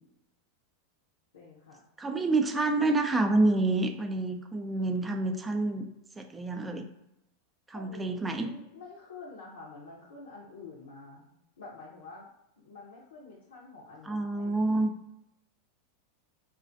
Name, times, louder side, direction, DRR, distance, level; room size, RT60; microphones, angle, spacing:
voice 1, 1.3-1.8 7.7-12.3 12.6-14.8, left 3 dB, 75° left, -5 dB, 0.5 m, -48 dB
voice 2, 2.0-5.9 6.2-6.9 7.7-8.5 14.0-14.9, right 2 dB, 15° right, 5 dB, 0.4 m, -28 dB
2.4 x 2.2 x 2.5 m, 0.84 s
hypercardioid pair, 90°, 0 cm